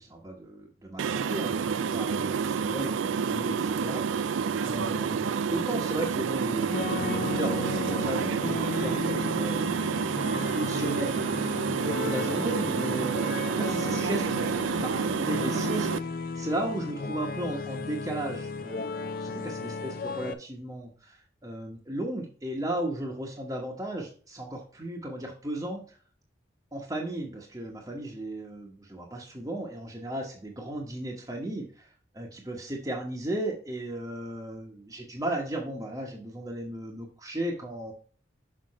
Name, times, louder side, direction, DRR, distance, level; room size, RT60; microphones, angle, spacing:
voice 1, 0.0-9.8 10.2-11.5 11.8-15.9 16.3-25.8 26.7-31.9 32.1-37.9, right 1 dB, 20° right, -2 dB, 1.1 m, -35 dB
sound 1, 1.0-16.0, right 6 dB, 85° right, 0.4 m, -29 dB
sound 2, 6.6-20.3, left 4 dB, 45° left, 0.6 m, -35 dB
6.6 x 5.2 x 4.1 m, 0.42 s
head